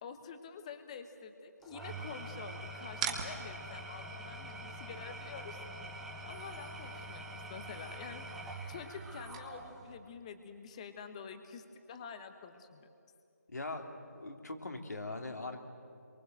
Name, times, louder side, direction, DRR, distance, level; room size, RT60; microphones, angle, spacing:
voice 1, 0.0-5.6 6.3-8.2 8.7-12.9, left 6 dB, 20° left, 8 dB, 1.3 m, -48 dB
Engine / Tools, 1.6-9.9, right 1 dB, 5° right, 1.3 m, -45 dB
sound 1, 2.9-9.9, right 6 dB, 20° right, 1.7 m, -46 dB
voice 2, 13.5-15.6, left 2 dB, 70° left, 4 dB, 3.1 m, -41 dB
27.5 x 23.5 x 7.9 m, 2.6 s
figure-of-eight pair, 160°, 9 cm